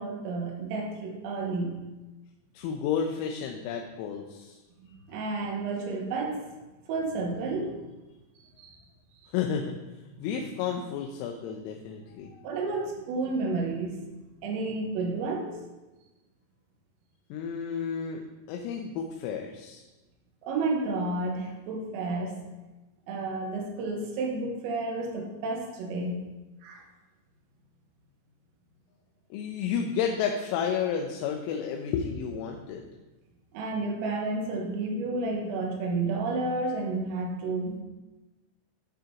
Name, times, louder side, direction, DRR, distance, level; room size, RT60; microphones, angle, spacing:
voice 1, 0.0-1.8 4.8-6.4 6.9-7.8 8.6-8.7 10.2-10.3 12.4-15.6 20.4-22.4 23.1-26.1 26.6-26.8 33.5-37.8, right 3 dB, 90° right, 0 dB, 3.9 m, -31 dB
voice 2, 2.5-4.6 9.3-9.8 10.2-12.3 17.3-19.8 29.3-32.9, left 7 dB, 85° left, 3 dB, 3.3 m, -31 dB
12.0 x 7.5 x 2.9 m, 1.1 s
omnidirectional pair, 6.0 m